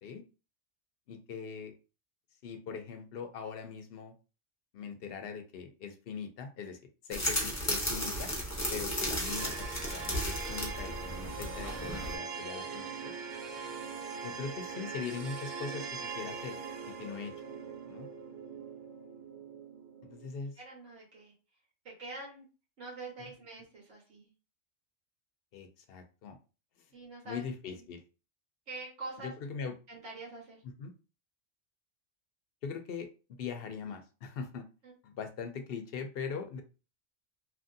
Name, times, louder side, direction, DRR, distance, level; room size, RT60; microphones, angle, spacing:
voice 1, 1.1-1.7 2.4-4.1 4.7-6.8 7.0-8.3 8.7-12.9 14.2-16.6 16.8-17.3 17.9-18.1 20.0-20.5 25.5-26.4 27.2-28.0 29.2-29.7 30.6-30.9 32.6-33.1 33.4-34.7 35.0-36.6, left 6 dB, 65° left, 6 dB, 0.7 m, -41 dB
sound 1, 7.1-12.1, equal, 20° left, 0.6 m, -34 dB
sound 2, 9.2-20.3, right 5 dB, 65° right, 0.7 m, -42 dB
voice 2, 20.6-21.3 21.8-22.5 22.8-24.3 26.9-27.7 28.7-29.3 29.9-30.6 34.8-34.9, right 3 dB, 85° right, -2 dB, 1.5 m, -45 dB
2.8 x 2.6 x 2.6 m, 0.32 s
omnidirectional pair, 1.2 m